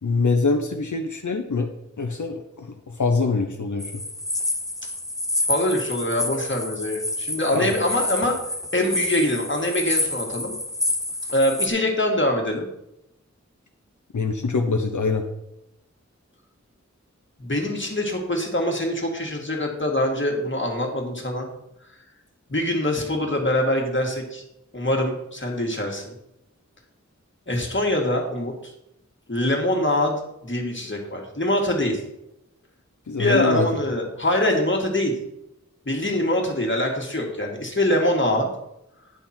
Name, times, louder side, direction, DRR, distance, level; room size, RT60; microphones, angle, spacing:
voice 1, 0.0-1.7 2.0-4.0 7.5-7.7 14.1-15.3 33.1-33.7, left 4 dB, 80° left, 4 dB, 0.8 m, -24 dB
sound 1, 3.8-11.7, left 1 dB, 10° left, 1.0 m, -28 dB
voice 2, 5.5-8.4 8.7-10.5 11.3-12.7 17.4-21.5 22.5-24.4 24.7-26.1 27.5-28.5 29.3-32.0 33.2-35.2 35.9-38.5, left 1 dB, 40° left, 1 dB, 1.9 m, -24 dB
10.0 x 5.7 x 4.4 m, 0.84 s
wide cardioid pair, 50°, 29 cm